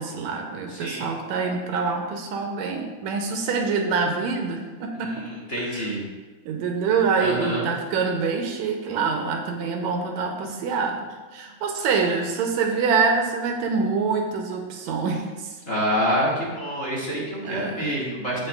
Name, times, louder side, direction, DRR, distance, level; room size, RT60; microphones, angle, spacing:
voice 1, 0.0-5.3 5.6-5.9 6.5-15.6 17.4-17.9, right 5 dB, 75° right, 3 dB, 2.0 m, -25 dB
voice 2, 0.7-1.1 4.9-6.0 7.2-7.7 15.7-18.5, equal, 30° left, -5 dB, 1.6 m, -27 dB
15.0 x 5.2 x 2.3 m, 1.3 s
omnidirectional pair, 3.4 m